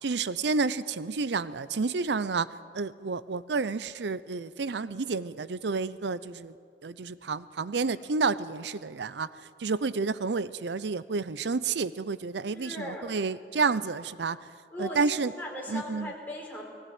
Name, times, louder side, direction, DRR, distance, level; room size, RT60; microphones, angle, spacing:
voice 1, 0.0-2.5 2.7-6.5 6.8-9.3 9.6-14.4 14.8-15.3 15.7-16.1, right 4 dB, 80° right, 17 dB, 0.6 m, -30 dB
voice 2, 12.5-13.1 14.7-15.0 15.4-16.6, left 1 dB, 10° left, -2 dB, 4.6 m, -38 dB
20.5 x 16.5 x 9.5 m, 2.2 s
head